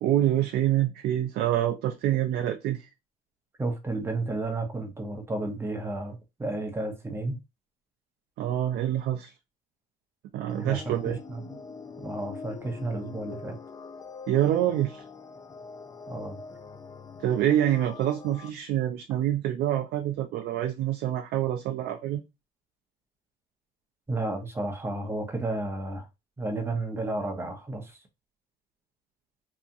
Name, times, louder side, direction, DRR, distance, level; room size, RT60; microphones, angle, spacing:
voice 1, 0.0-2.9 8.4-9.3 10.3-11.2 14.3-15.0 17.2-22.2, right 12 dB, 70° right, 0.4 m, -26 dB
voice 2, 3.6-7.4 10.6-11.6 12.0-13.6 16.1-16.4 24.1-26.1 26.4-27.9, right 2 dB, 15° right, 0.7 m, -32 dB
sound 1, 10.5-18.5, left 5 dB, 20° left, 0.3 m, -44 dB
2.8 x 2.3 x 2.5 m
cardioid pair, 110°, 17 cm